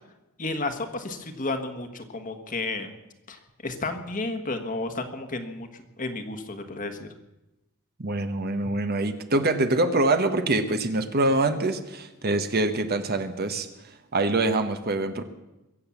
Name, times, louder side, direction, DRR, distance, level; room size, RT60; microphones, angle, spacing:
voice 1, 0.4-2.9 3.3-5.7 6.0-7.1, left 2 dB, 35° left, 7 dB, 1.4 m, -32 dB
voice 2, 8.0-13.7 14.1-15.2, right 2 dB, 45° right, 8 dB, 1.1 m, -24 dB
22.5 x 7.9 x 7.2 m, 0.97 s
head